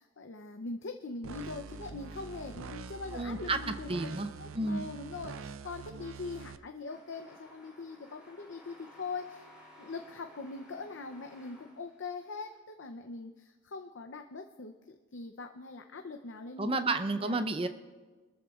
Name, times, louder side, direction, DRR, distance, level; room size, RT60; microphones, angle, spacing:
voice 1, 0.0-9.5 9.8-17.5, left 3 dB, 65° left, 5 dB, 0.6 m, -42 dB
sound 1, 1.2-6.6, right 4 dB, 90° right, 0.5 m, -44 dB
voice 2, 3.1-3.6 3.9-4.3 4.6-4.9 16.6-17.7, right 2 dB, 25° right, 9 dB, 0.6 m, -31 dB
sound 2, 6.8-12.6, left 1 dB, 5° right, 4.0 m, -57 dB
25.5 x 13.5 x 2.4 m, 1.4 s
head